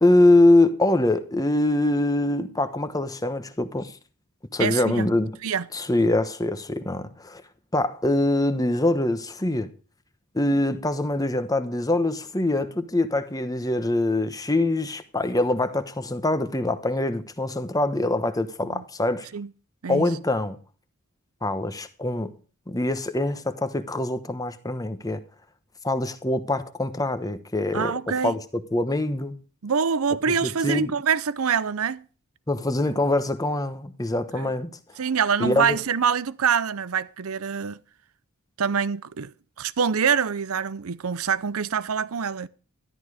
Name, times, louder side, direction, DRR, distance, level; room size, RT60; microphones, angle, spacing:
voice 1, 0.0-3.9 4.5-5.3 5.7-7.4 7.7-9.7 10.3-19.3 19.9-20.6 21.4-22.3 22.7-25.2 25.8-28.0 28.2-29.4 30.4-30.9 32.5-34.7 35.4-35.8, left 2 dB, 15° left, 1.1 m, -23 dB
voice 2, 4.6-5.1 5.4-5.7 18.7-18.8 19.3-19.5 19.8-20.1 27.7-28.4 29.6-32.0 34.3-34.5 35.0-37.8 38.6-39.3 39.6-42.5, right 6 dB, 75° right, 0.6 m, -25 dB
13.0 x 11.5 x 4.9 m
head